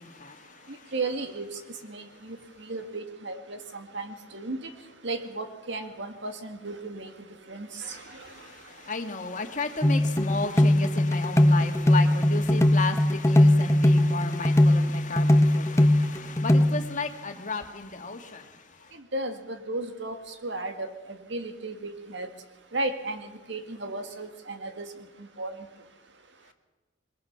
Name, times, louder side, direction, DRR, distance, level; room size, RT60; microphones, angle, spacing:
voice 1, 0.0-0.7 7.9-18.5, left 3 dB, 40° left, 5 dB, 1.9 m, -34 dB
voice 2, 0.7-4.7 5.0-7.1 7.5-8.3 19.1-22.3 22.7-24.9 25.2-25.6, right 2 dB, 70° right, 7 dB, 1.9 m, -35 dB
sound 1, 9.8-16.7, left 1 dB, 15° left, 0.8 m, -20 dB
22.0 x 21.0 x 5.8 m, 1.2 s
head